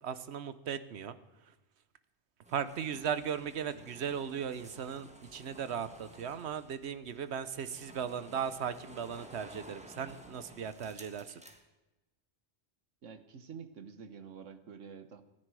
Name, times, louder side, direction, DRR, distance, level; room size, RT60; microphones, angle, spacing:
voice 1, 0.0-1.2 2.5-11.4, right 7 dB, 65° right, 13 dB, 1.1 m, -37 dB
sound 1, 2.4-11.6, equal, 5° right, 1.5 m, -54 dB
voice 2, 13.0-15.2, right 6 dB, 85° right, 10 dB, 1.5 m, -48 dB
26.0 x 10.5 x 4.8 m, 1.1 s
omnidirectional pair, 1.2 m